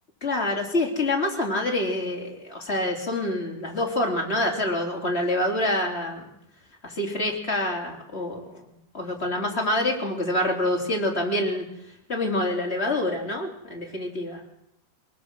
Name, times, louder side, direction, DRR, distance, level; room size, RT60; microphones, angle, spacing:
voice 1, 0.2-6.2 6.8-8.7 8.9-11.7 12.1-14.4, left 1 dB, 35° left, 1 dB, 3.8 m, -26 dB
23.0 x 22.0 x 6.2 m, 0.79 s
omnidirectional pair, 2.0 m